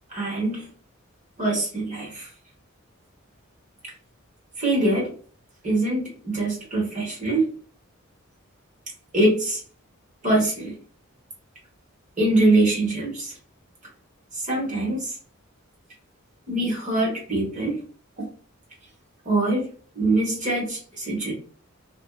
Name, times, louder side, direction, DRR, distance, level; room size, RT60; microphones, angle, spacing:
voice 1, 0.1-0.7 1.4-2.3 4.6-5.1 5.6-7.5 9.1-9.6 10.2-10.8 12.2-13.4 14.3-15.1 16.5-17.8 19.2-19.7 19.9-21.3, right 2 dB, 35° right, -2 dB, 1.1 m, -23 dB
2.6 x 2.2 x 2.3 m, 0.43 s
head